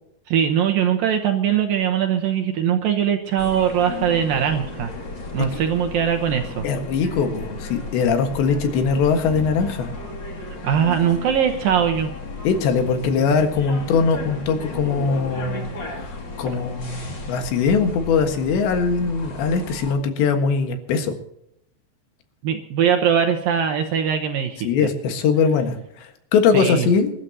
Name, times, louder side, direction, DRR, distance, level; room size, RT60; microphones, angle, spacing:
voice 1, 0.3-4.9 5.3-6.7 10.6-12.1 22.4-24.7 26.5-26.9, right 8 dB, 75° right, 5 dB, 2.2 m, -21 dB
sound 1, 3.4-19.9, left 3 dB, 35° left, 2.3 m, -34 dB
voice 2, 6.6-9.9 12.5-21.2 24.6-27.1, left 5 dB, 80° left, 6 dB, 3.8 m, -21 dB
27.0 x 12.5 x 2.8 m, 0.78 s
omnidirectional pair, 5.1 m